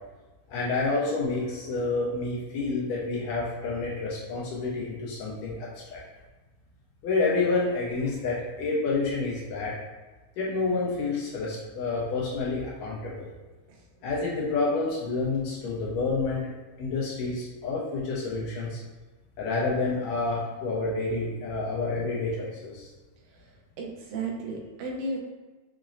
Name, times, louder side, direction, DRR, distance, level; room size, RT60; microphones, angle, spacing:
voice 1, 0.5-6.0 7.0-9.7 10.4-13.3 14.0-16.4 16.8-18.8 19.4-22.9, left 3 dB, 80° left, -4 dB, 1.7 m, -29 dB
voice 2, 23.8-25.2, right 3 dB, 85° right, 0 dB, 2.1 m, -33 dB
5.7 x 2.0 x 2.5 m, 1.2 s
omnidirectional pair, 3.4 m